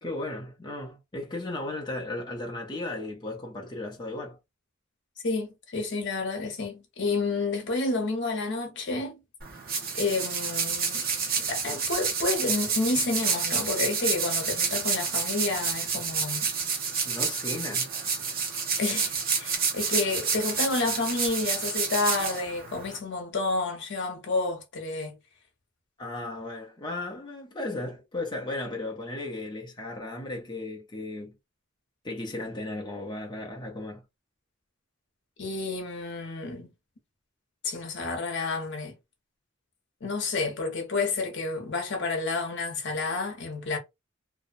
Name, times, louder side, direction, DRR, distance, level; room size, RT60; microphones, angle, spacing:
voice 1, 0.0-4.4 17.0-17.9 26.0-31.3 32.0-34.0, left 2 dB, 20° left, 0.5 m, -35 dB
voice 2, 5.2-9.2 9.9-11.1 11.5-16.5 18.8-25.2 35.4-36.7 37.6-39.0 40.0-43.8, left 3 dB, 65° left, 0.8 m, -30 dB
sound 1, 9.4-23.0, right 5 dB, 50° right, 0.8 m, -29 dB
2.6 x 2.0 x 2.4 m
head